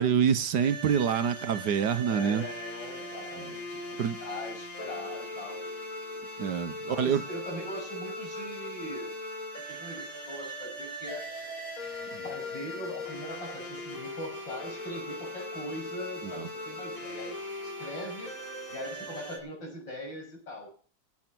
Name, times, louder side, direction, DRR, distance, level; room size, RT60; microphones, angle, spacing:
voice 1, 0.0-2.4 4.0-4.2 6.4-7.2 12.1-12.2 16.2-16.5, right 8 dB, 65° right, 1.5 m, -26 dB
sound 1, 0.6-19.4, left 1 dB, 45° left, 4.9 m, -39 dB
voice 2, 2.0-5.8 6.1-6.2 6.8-9.1 9.7-11.3 12.2-17.3 17.6-18.3 18.7-20.7, left 1 dB, 75° left, 7.9 m, -41 dB
16.5 x 9.0 x 6.1 m
omnidirectional pair, 2.0 m